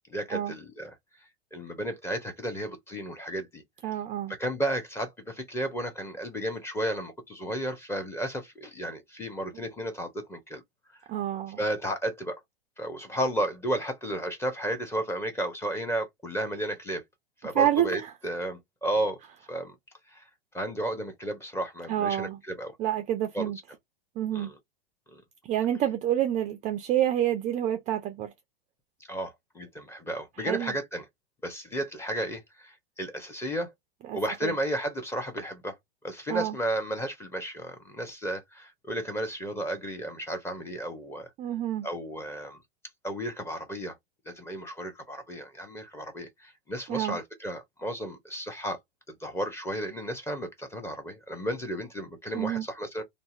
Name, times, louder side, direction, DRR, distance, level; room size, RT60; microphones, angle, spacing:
voice 1, 0.1-0.9 1.5-3.6 4.3-10.6 11.6-12.4 12.8-17.0 17.4-19.2 19.5-19.7 20.1-20.2 20.5-22.7 23.3-23.5 24.3-24.5 25.1-25.2 29.1-31.0 31.4-33.7 34.1-35.8 36.0-41.3 41.8-42.6 43.0-44.0 44.3-48.8 49.2-53.0, right 1 dB, 10° left, 0.8 m, -33 dB
voice 2, 3.8-4.4 11.1-11.6 17.5-18.1 21.9-22.4 22.8-23.6 24.2-24.5 25.4-28.3 30.4-30.7 34.0-34.5 36.3-36.6 41.4-41.9 46.9-47.2 52.3-52.7, right 11 dB, 25° right, 0.4 m, -28 dB
2.7 x 2.0 x 2.4 m
hypercardioid pair, 105°, 31 cm